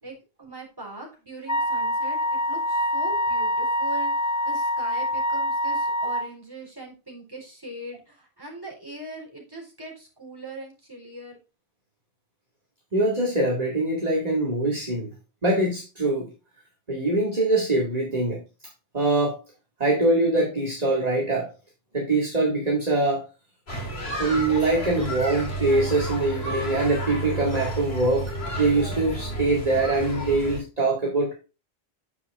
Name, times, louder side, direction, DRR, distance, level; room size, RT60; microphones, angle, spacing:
voice 1, 0.0-2.2 2.4-11.4, right 2 dB, 20° right, -1 dB, 4.0 m, -40 dB
Wind instrument woodwind instrument, 1.5-6.3, equal, 25° left, 0.4 m, -25 dB
voice 2, 12.9-15.1 15.4-16.3 16.9-18.4 18.9-19.4 19.8-21.5 21.9-23.2 24.2-31.3, right 2 dB, 40° right, -3 dB, 2.2 m, -23 dB
sound 1, 23.7-30.6, right 2 dB, 75° left, 2.6 m, -31 dB
9.7 x 7.6 x 2.4 m, 0.31 s
omnidirectional pair, 1.1 m